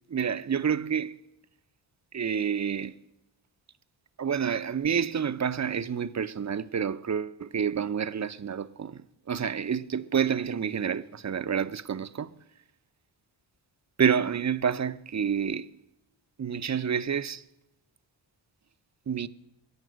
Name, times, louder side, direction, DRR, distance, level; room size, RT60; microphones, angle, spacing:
voice 1, 0.1-1.2 2.1-3.0 4.2-12.3 14.0-15.7 16.4-17.4 19.1-19.3, right 7 dB, 35° right, 0.7 m, -28 dB
22.0 x 8.9 x 6.3 m
cardioid pair, 60°, 47 cm